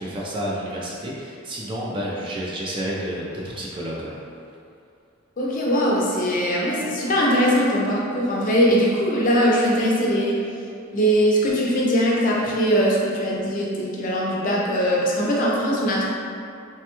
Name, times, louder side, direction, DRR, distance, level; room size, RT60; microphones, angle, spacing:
voice 1, 0.0-4.2, equal, 25° right, -4 dB, 0.4 m, -30 dB
voice 2, 5.4-10.4 10.9-16.2, equal, 40° left, -4 dB, 0.5 m, -21 dB
3.2 x 2.2 x 2.9 m, 2.5 s
head